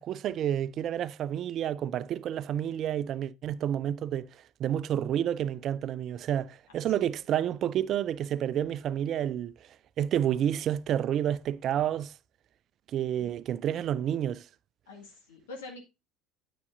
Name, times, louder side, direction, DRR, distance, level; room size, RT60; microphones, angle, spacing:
voice 1, 0.0-4.3 4.6-9.5 10.0-12.1 12.9-14.5, right 10 dB, 45° right, 0.4 m, -29 dB
voice 2, 6.7-7.2 13.2-13.3 14.9-15.8, left 3 dB, 70° left, 2.0 m, -46 dB
9.6 x 7.9 x 2.6 m
figure-of-eight pair, 65°, 0 cm